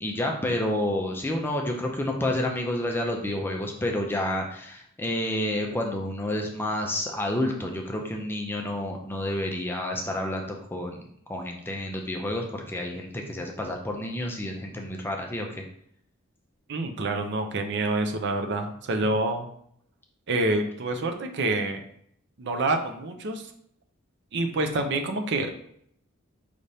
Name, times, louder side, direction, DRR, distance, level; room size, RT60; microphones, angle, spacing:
voice 1, 0.0-11.0 11.3-15.6, left 1 dB, 10° left, 1 dB, 0.5 m, -29 dB
voice 2, 16.7-19.5 20.3-21.8 22.4-23.4 24.3-25.6, right 2 dB, 55° right, 5 dB, 0.6 m, -27 dB
5.0 x 3.3 x 2.7 m, 0.67 s
head